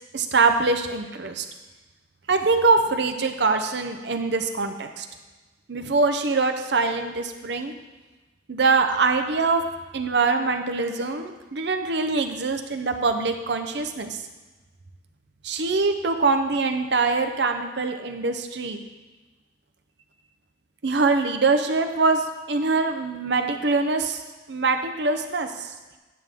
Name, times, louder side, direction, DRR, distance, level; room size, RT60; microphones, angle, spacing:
voice 1, 0.1-1.4 2.3-5.1 5.7-7.7 8.5-9.6 9.9-14.2 15.4-18.8 20.8-24.2 24.5-25.7, right 3 dB, 65° right, 6 dB, 0.7 m, -23 dB
9.6 x 6.6 x 3.6 m, 1.2 s
head